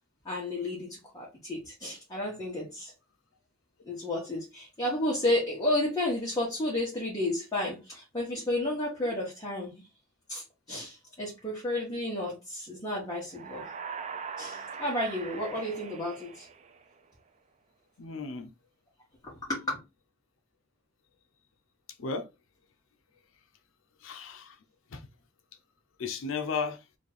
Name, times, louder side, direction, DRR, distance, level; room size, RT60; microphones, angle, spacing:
voice 1, 0.2-2.9 3.8-9.9 10.3-13.6 14.4-16.5 19.2-19.8, left 1 dB, 20° left, 1.2 m, -32 dB
sound 1, 13.3-17.1, right 6 dB, 35° right, 0.4 m, -41 dB
voice 2, 18.0-18.5 22.0-22.3 24.0-24.5 24.9-25.0 26.0-26.8, left 5 dB, 70° left, 0.5 m, -34 dB
3.2 x 2.6 x 4.0 m
head